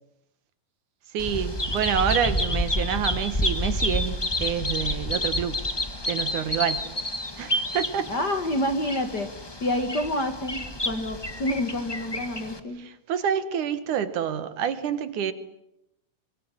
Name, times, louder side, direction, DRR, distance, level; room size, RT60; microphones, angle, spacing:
voice 1, 1.1-5.6 6.1-6.9 7.4-8.1 12.8-15.3, right 8 dB, 75° right, 2.9 m, -27 dB
Bird vocalization bird call bird song, 1.2-12.6, left 1 dB, 20° left, 0.6 m, -29 dB
voice 2, 8.1-9.3 9.6-12.8, left 1 dB, 40° left, 1.9 m, -28 dB
25.0 x 23.5 x 10.0 m
omnidirectional pair, 3.6 m